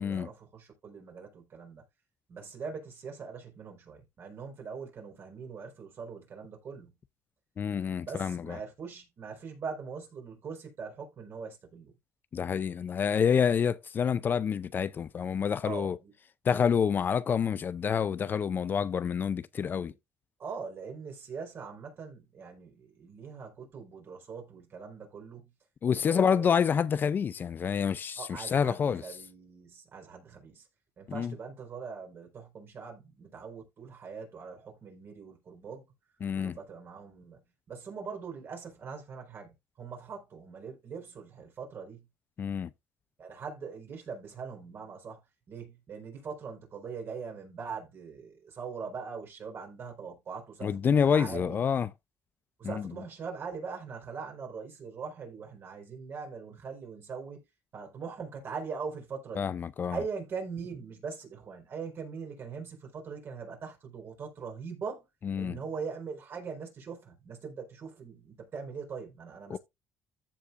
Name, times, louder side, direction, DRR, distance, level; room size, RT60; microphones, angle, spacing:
voice 1, 0.0-1.8 2.3-7.0 8.0-12.0 15.6-16.1 19.8-19.9 20.4-25.5 26.0-26.6 28.2-30.7 31.0-35.9 36.4-42.1 43.2-45.2 45.5-51.6 52.6-57.4 57.7-59.6 59.8-65.0 65.3-69.6, right 5 dB, 50° right, 4.4 m, -42 dB
voice 2, 7.6-8.6 12.3-16.0 16.4-19.9 25.8-29.0 31.1-31.3 36.2-36.6 42.4-42.7 50.6-51.9 52.6-52.7 59.4-60.0 65.2-65.6 69.5-69.6, left 7 dB, 40° left, 0.4 m, -28 dB
14.5 x 4.9 x 2.5 m
cardioid pair, 100°, 5 cm